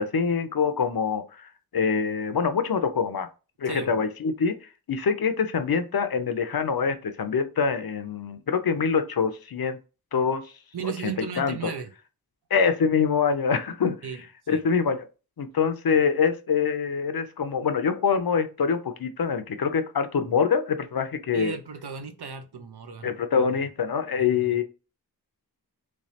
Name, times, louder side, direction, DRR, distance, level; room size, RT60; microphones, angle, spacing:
voice 1, 0.0-3.3 3.6-4.6 4.9-9.8 10.1-10.4 10.8-11.6 12.5-14.0 14.5-15.1 15.4-21.6 23.0-24.6, left 6 dB, 65° left, 0.6 m, -25 dB
voice 2, 3.7-4.0 10.7-11.9 14.0-14.2 14.5-14.6 21.3-23.1 24.2-24.6, right 7 dB, 80° right, 0.7 m, -35 dB
3.2 x 3.1 x 2.8 m
wide cardioid pair, 60°, 39 cm